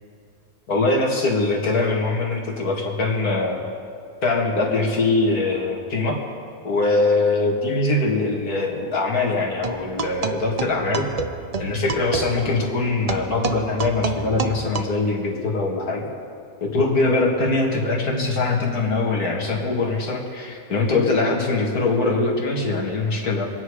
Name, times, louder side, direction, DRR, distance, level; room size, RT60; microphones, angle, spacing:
voice 1, 0.7-3.6 4.2-6.2 6.6-11.0 11.6-16.1 16.6-23.5, left 3 dB, 65° left, -1 dB, 2.6 m, -22 dB
sound 1, 9.6-14.8, right 4 dB, 65° right, 0.3 m, -29 dB
25.5 x 9.8 x 4.9 m, 2.4 s
omnidirectional pair, 1.8 m